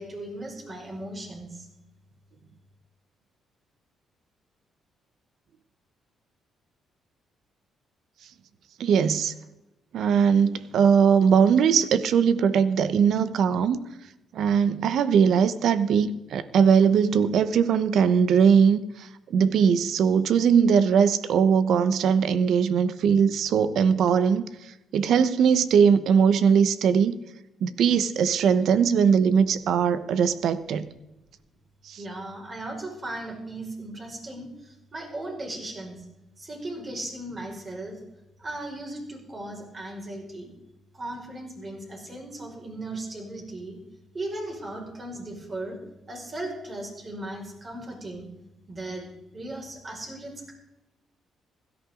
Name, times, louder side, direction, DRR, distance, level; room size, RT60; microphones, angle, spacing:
voice 1, 0.0-1.7 32.0-36.1 36.4-37.9 38.4-40.5 40.9-43.8 44.1-45.8 46.1-48.3 48.7-49.0 49.3-50.5, right 1 dB, 35° right, 0 dB, 5.3 m, -37 dB
voice 2, 8.8-9.3 9.9-13.8 14.3-24.4 24.9-27.2 27.6-30.9 31.9-32.0, right 7 dB, 70° right, 14 dB, 0.9 m, -20 dB
16.5 x 13.5 x 3.8 m, 0.95 s
cardioid pair, 90°, 0 cm